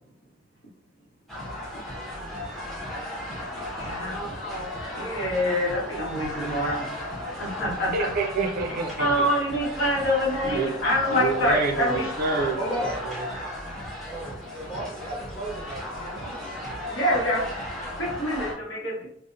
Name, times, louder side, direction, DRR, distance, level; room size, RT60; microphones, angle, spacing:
voice 1, 1.3-1.7 12.6-13.0 14.0-16.6, right 1 dB, 25° left, -6 dB, 1.0 m, -35 dB
sound 1, 1.3-18.5, left 1 dB, ahead, 0.5 m, -35 dB
voice 2, 3.7-4.7 4.9-6.9 7.4-8.1 9.0-12.1 16.9-17.4 17.8-19.1, equal, 75° left, -3 dB, 0.9 m, -26 dB
voice 3, 7.9-9.1 10.4-10.7 11.1-12.6 13.1-13.2, right 3 dB, 50° right, 3 dB, 0.4 m, -27 dB
2.7 x 2.0 x 2.4 m, 0.66 s
head